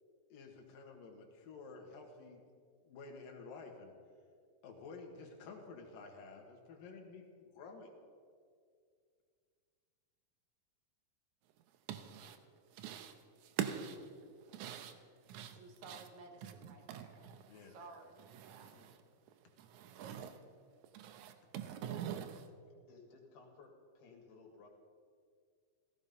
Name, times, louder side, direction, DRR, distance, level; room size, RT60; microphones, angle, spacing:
voice 1, 0.3-2.4 2.8-3.9 4.6-7.9 17.5-17.8 18.7-18.9, left 4 dB, 70° left, 2 dB, 3.3 m, -52 dB
sound 1, 11.6-12.4 12.7-13.2 13.4-17.7 18.0-19.0 19.3-20.4 20.8-22.5, right 9 dB, 80° right, 1.7 m, -44 dB
voice 2, 15.5-17.3 17.6-18.8, right 3 dB, 65° right, 5 dB, 2.0 m, -55 dB
voice 3, 22.9-24.7, left 4 dB, 85° left, 0 dB, 3.9 m, -58 dB
16.0 x 14.5 x 5.4 m, 2.1 s
omnidirectional pair, 4.4 m